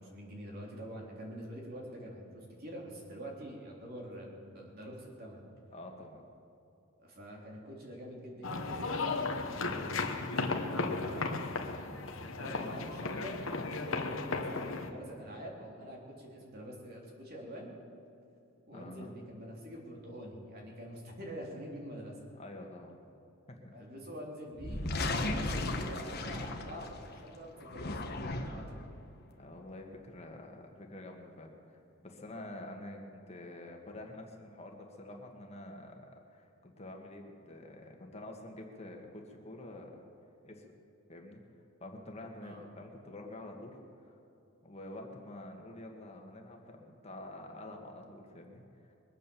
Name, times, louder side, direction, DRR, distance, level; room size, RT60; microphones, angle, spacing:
voice 1, 0.0-5.4 7.0-9.8 10.6-11.3 12.2-17.7 18.7-22.3 23.7-28.2 28.5-28.8 42.4-42.6, equal, 45° right, -1 dB, 3.4 m, -46 dB
voice 2, 5.7-6.3 10.3-11.4 18.7-19.2 22.3-23.0 23.5-23.7 24.0-24.1 29.4-40.1 40.4-40.7 41.1-41.4 41.8-43.8 44.0-44.2 44.6-48.9, left 1 dB, 30° left, 2 dB, 1.8 m, -48 dB
sound 1, 8.4-14.9, left 3 dB, 65° left, 1.2 m, -35 dB
sound 2, 24.5-27.1 27.6-28.8, left 2 dB, 50° left, 1.3 m, -35 dB
22.5 x 8.8 x 7.1 m, 2.8 s
head